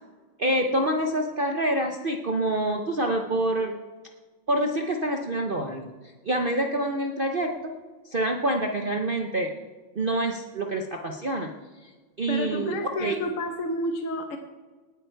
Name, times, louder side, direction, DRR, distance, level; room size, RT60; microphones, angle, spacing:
voice 1, 0.4-3.8 4.5-5.9 6.2-7.5 8.1-9.5 9.9-11.5 11.8-11.9 12.2-12.7 13.0-13.2, right 1 dB, 55° right, 3 dB, 0.6 m, -26 dB
voice 2, 12.3-14.4, left 1 dB, 50° left, 5 dB, 1.2 m, -30 dB
18.5 x 8.9 x 4.6 m, 1.4 s
omnidirectional pair, 2.1 m